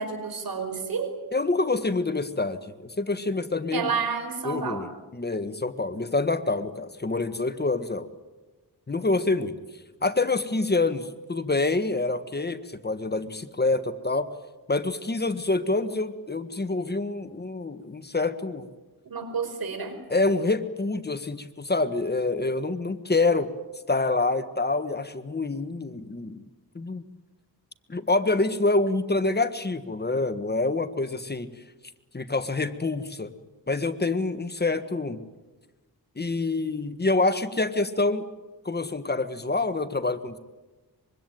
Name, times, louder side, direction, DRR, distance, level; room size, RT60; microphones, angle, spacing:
voice 1, 0.0-1.2 3.7-4.9 19.1-20.0, right 5 dB, 70° right, 8 dB, 5.2 m, -30 dB
voice 2, 1.3-3.9 4.4-4.9 5.1-8.1 8.9-9.5 10.0-14.3 14.7-18.7 20.1-23.5 23.9-26.4 26.7-27.0 27.9-31.5 32.1-33.3 33.7-35.2 36.2-38.2 38.6-40.4, left 3 dB, 25° left, 10 dB, 1.6 m, -26 dB
25.0 x 23.5 x 9.3 m, 1.2 s
cardioid pair, 80°, 37 cm